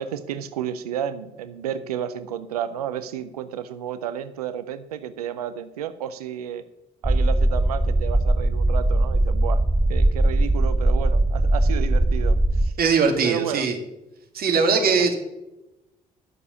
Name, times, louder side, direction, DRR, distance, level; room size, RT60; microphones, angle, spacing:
voice 1, 0.0-6.6 7.0-9.6 9.9-12.7 13.2-13.7 15.0-15.1, right 9 dB, 90° right, 12 dB, 0.6 m, -32 dB
sound 1, 7.0-12.7, right 1 dB, 10° right, 0.6 m, -20 dB
voice 2, 12.8-13.7 14.3-15.1, right 5 dB, 55° right, 4 dB, 2.5 m, -20 dB
12.5 x 6.8 x 7.0 m, 0.95 s
hypercardioid pair, 50°, 19 cm